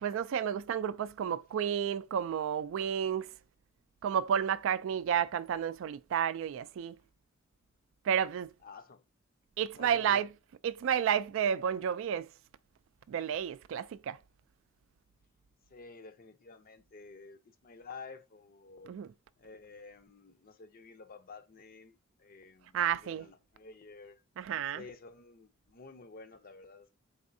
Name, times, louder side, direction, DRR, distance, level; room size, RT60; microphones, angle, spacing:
voice 1, 0.0-3.3 4.0-7.0 8.0-8.5 9.6-10.3 10.6-12.3 13.1-14.2 18.9-19.1 22.7-23.3 24.4-24.8, right 8 dB, 70° right, 0.3 m, -31 dB
voice 2, 8.6-9.0 9.7-10.3 15.7-18.9 19.4-24.2 24.7-27.0, left 4 dB, 45° left, 0.6 m, -51 dB
4.1 x 3.5 x 2.6 m
head